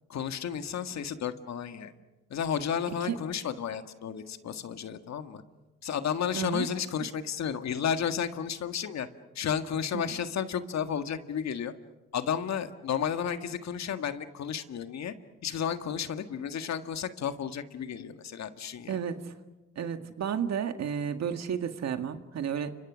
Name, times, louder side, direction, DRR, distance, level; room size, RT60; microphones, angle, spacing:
voice 1, 0.1-1.9 2.3-5.4 5.8-9.1 9.4-11.7 12.1-15.1 15.4-19.0, left 8 dB, 65° left, 8 dB, 1.8 m, -32 dB
voice 2, 6.3-6.7 9.9-10.1 18.9-19.3 19.8-22.8, right 7 dB, 60° right, 7 dB, 2.0 m, -32 dB
30.0 x 26.0 x 6.4 m, 1.1 s
cardioid pair, 90°, 30 cm